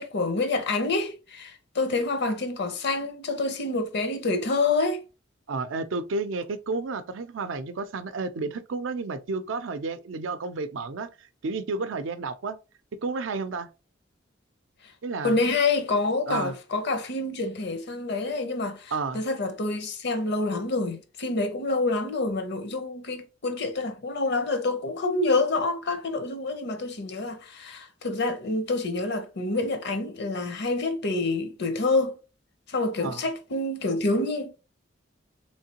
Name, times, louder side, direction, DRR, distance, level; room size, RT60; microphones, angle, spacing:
voice 1, 0.0-5.0 15.2-32.2 32.7-34.5, left 3 dB, 60° left, 0.7 m, -27 dB
voice 2, 5.5-12.6 13.0-13.7 15.0-15.4 16.3-16.6 18.9-19.2 33.0-33.2, right 3 dB, 85° right, 0.5 m, -31 dB
3.5 x 3.2 x 2.8 m
head